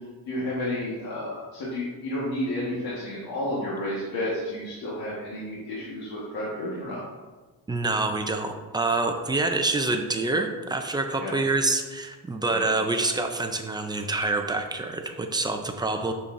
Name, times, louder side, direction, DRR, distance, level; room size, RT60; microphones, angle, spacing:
voice 1, 0.3-7.0 11.2-11.4 12.5-12.6, left 1 dB, 70° left, -6 dB, 1.5 m, -31 dB
voice 2, 7.7-16.1, right 2 dB, 10° right, 4 dB, 0.4 m, -26 dB
6.9 x 6.9 x 2.5 m, 1.3 s
cardioid pair, 170°, 38 cm